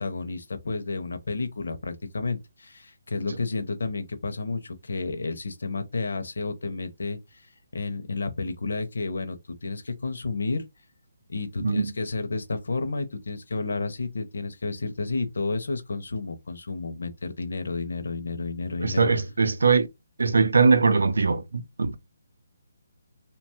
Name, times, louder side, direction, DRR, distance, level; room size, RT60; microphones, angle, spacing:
voice 1, 0.0-7.4 7.7-10.6 11.3-19.1, left 3 dB, 70° left, 0.6 m, -31 dB
voice 2, 11.6-11.9 18.8-19.9 20.2-22.0, right 4 dB, 90° right, 0.5 m, -21 dB
2.9 x 2.2 x 2.9 m
hypercardioid pair, 175°, 0 cm